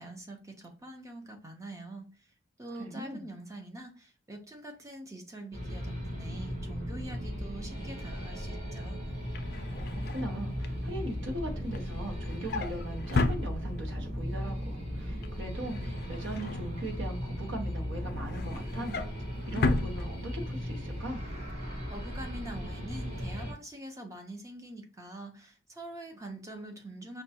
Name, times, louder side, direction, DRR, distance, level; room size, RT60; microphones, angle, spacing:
voice 1, 0.0-2.1 2.6-9.0 21.9-27.2, right 1 dB, 15° right, 0.5 m, -44 dB
voice 2, 2.7-3.3 9.9-19.0 19.5-21.2, right 1 dB, 70° right, 0.9 m, -39 dB
sound 1, 5.5-23.5, equal, 35° right, 1.4 m, -37 dB
Drawer open or close, 9.1-14.1 14.5-14.8 15.1-17.3 17.7-20.7 21.0-21.2 21.5-21.6, left 3 dB, 50° left, 0.4 m, -35 dB
5.1 x 2.2 x 2.7 m
head